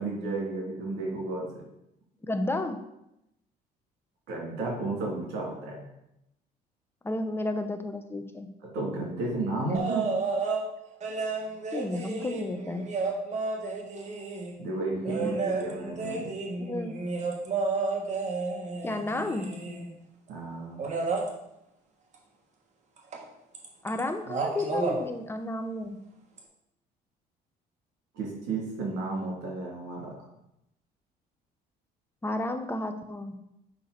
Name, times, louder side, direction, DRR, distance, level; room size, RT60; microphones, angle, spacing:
voice 1, 0.0-1.5 4.3-5.8 8.6-10.1 14.6-16.3 20.3-20.8 28.1-30.1, right 2 dB, 85° right, -2 dB, 2.8 m, -32 dB
voice 2, 2.2-2.8 7.0-8.5 11.7-12.9 15.0-15.5 16.6-17.0 18.8-19.5 23.8-26.0 32.2-33.3, left 2 dB, 15° left, 7 dB, 0.7 m, -32 dB
sound 1, 9.7-10.6 11.0-14.5 15.0-19.9 20.8-21.3 23.1-23.2 23.5-24.0 24.3-25.0 26.4-26.5, right 4 dB, 45° right, 1.4 m, -31 dB
6.7 x 5.6 x 4.1 m, 0.83 s
cardioid pair, 110°, 17 cm